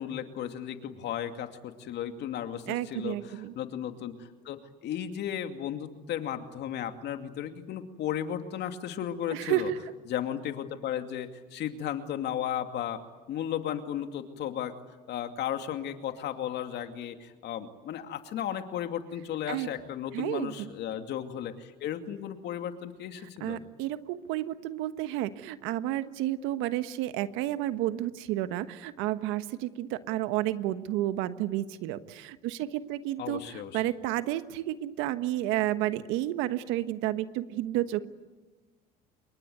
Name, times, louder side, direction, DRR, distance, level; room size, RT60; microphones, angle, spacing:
voice 1, 0.0-9.7 10.1-13.0 13.3-14.7 15.1-23.6 33.2-33.8, left 10 dB, 60° left, 7 dB, 2.5 m, -35 dB
voice 2, 2.7-3.5 9.3-9.8 19.5-19.7 20.1-20.7 23.4-38.0, right 14 dB, 75° right, 12 dB, 1.3 m, -31 dB
27.0 x 23.0 x 9.5 m, 1.2 s
supercardioid pair, 95°, 20 cm